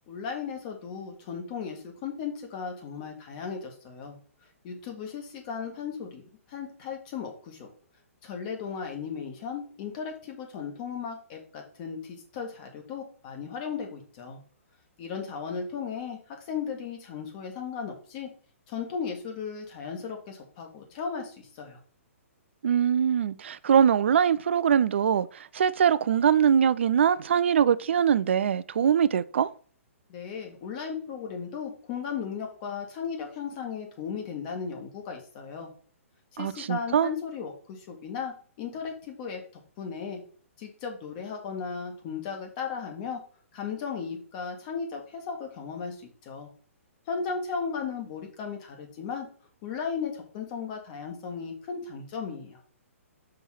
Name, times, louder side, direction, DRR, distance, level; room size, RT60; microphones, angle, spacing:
voice 1, 0.1-4.2 4.6-6.2 6.5-7.7 8.2-14.4 15.0-16.2 16.5-18.3 18.7-21.8 30.1-35.7 36.3-39.4 39.8-40.2 40.6-43.2 43.5-46.0 46.2-46.5 47.1-49.3 49.6-52.6, left 6 dB, 35° left, 1.9 m, -36 dB
voice 2, 22.6-29.5 36.4-37.1, right 8 dB, 55° right, 0.4 m, -23 dB
5.7 x 3.6 x 5.9 m
figure-of-eight pair, 120°, 8 cm